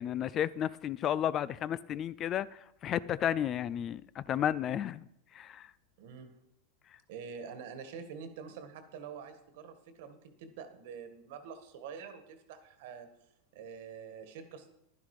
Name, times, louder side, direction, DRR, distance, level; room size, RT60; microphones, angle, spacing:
voice 1, 0.0-5.1 5.3-5.7, left 10 dB, 35° left, 0.4 m, -32 dB
voice 2, 6.0-6.3 7.1-13.1 13.5-14.7, right 6 dB, 70° right, 1.7 m, -46 dB
11.0 x 10.5 x 4.9 m
hypercardioid pair, 120°, 0 cm